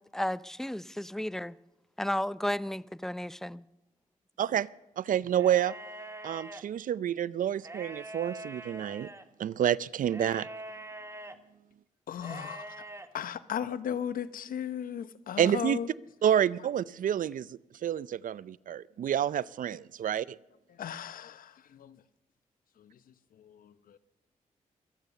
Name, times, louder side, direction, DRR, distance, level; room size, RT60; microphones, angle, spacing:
voice 1, 0.0-1.6 2.0-3.6, left 1 dB, 5° left, 0.6 m, -33 dB
voice 2, 5.0-5.7 6.2-9.1 9.4-10.5 15.4-15.8 16.2-20.4, right 10 dB, 70° right, 0.5 m, -29 dB
sound 1, 5.3-6.6 7.6-9.2 10.1-11.4 12.2-13.1, right 1 dB, 20° right, 1.6 m, -44 dB
voice 3, 12.1-12.7 13.1-15.9 20.8-22.0 22.8-22.9 23.4-24.0, left 9 dB, 80° left, 0.8 m, -36 dB
23.0 x 9.1 x 6.7 m
cardioid pair, 55°, 14 cm